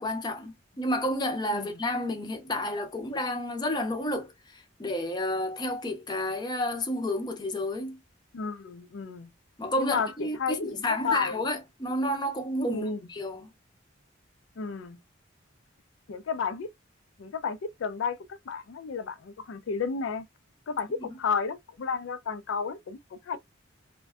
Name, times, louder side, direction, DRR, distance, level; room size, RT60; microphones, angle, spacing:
voice 1, 0.0-8.0 9.6-13.5 21.0-21.2, left 1 dB, 20° left, 0.5 m, -31 dB
voice 2, 8.3-9.3 9.8-11.4 12.7-13.0 14.6-15.0 16.1-16.7 17.2-20.3 20.7-23.4, left 5 dB, 85° left, 0.4 m, -32 dB
2.5 x 2.1 x 2.2 m
head